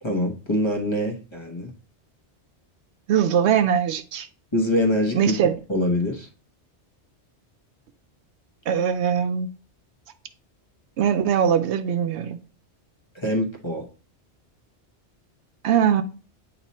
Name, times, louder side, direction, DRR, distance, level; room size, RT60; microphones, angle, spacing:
voice 1, 0.0-1.7 4.5-6.3 13.1-13.8, left 1 dB, 25° left, 1.0 m, -24 dB
voice 2, 3.1-4.3 5.1-5.5 8.7-9.5 11.0-12.4 15.6-16.0, right 8 dB, 75° right, 0.8 m, -21 dB
8.7 x 3.0 x 4.1 m
omnidirectional pair, 1.2 m